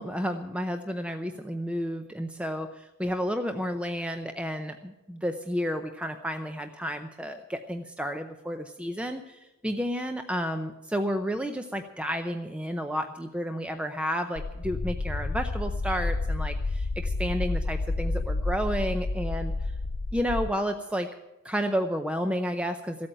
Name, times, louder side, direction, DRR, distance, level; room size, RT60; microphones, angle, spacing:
voice 1, 0.0-19.5 20.1-21.1 21.4-23.1, equal, 5° right, 6 dB, 0.6 m, -31 dB
sound 1, 14.4-20.5, left 2 dB, 40° left, 0.5 m, -30 dB
14.5 x 8.6 x 8.9 m, 0.97 s
head